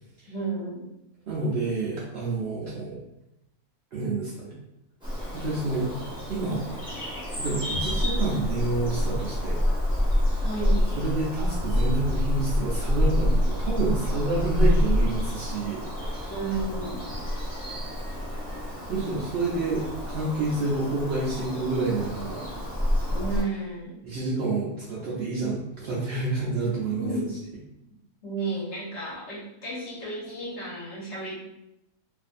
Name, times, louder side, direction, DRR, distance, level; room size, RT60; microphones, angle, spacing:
voice 1, 0.3-0.9 10.4-10.8 16.3-17.2 23.1-24.0 26.9-27.3 28.2-31.4, right 2 dB, 60° left, -5 dB, 0.8 m, -32 dB
voice 2, 1.3-3.0 3.9-4.5 5.3-5.9 6.3-6.6 7.4-9.6 11.0-16.3 18.9-22.5 24.0-27.1, right 3 dB, 90° right, -5 dB, 0.5 m, -28 dB
Bird vocalization bird call bird song, 5.0-23.4, equal, 5° right, 0.3 m, -27 dB
2.5 x 2.4 x 2.4 m, 0.87 s
omnidirectional pair, 1.6 m